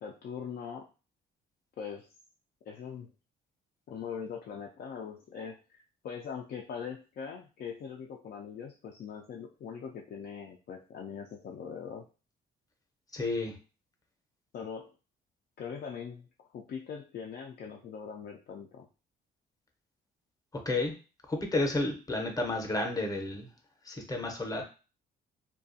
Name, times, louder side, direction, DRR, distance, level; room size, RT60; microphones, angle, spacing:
voice 1, 0.0-0.9 1.8-2.1 2.7-3.1 3.9-12.1 14.5-14.9 15.6-18.9, left 7 dB, 50° left, 0 dB, 0.4 m, -41 dB
voice 2, 13.1-13.6 20.5-20.9 21.3-23.5 23.8-24.6, left 2 dB, 20° left, 3 dB, 0.7 m, -31 dB
2.4 x 2.2 x 2.6 m, 0.33 s
cardioid pair, 90°, 20 cm